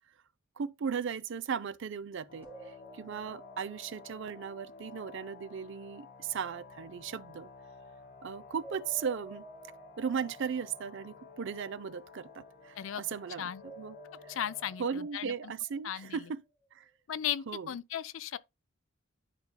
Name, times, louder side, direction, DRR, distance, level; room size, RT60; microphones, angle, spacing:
voice 1, 0.6-7.5 8.2-9.4 10.0-14.0 14.2-14.3 14.8-16.4 16.7-16.8 17.5-17.7, right 6 dB, 65° right, 0.5 m, -37 dB
sound 1, 2.3-14.8, left 4 dB, 55° left, 1.3 m, -52 dB
sound 2, 2.4-5.4 8.5-11.8 13.5-16.3, right 2 dB, 10° right, 2.9 m, -53 dB
voice 2, 14.3-15.5 15.8-16.3 17.1-18.4, left 10 dB, 70° left, 0.5 m, -36 dB
10.5 x 5.3 x 2.2 m
head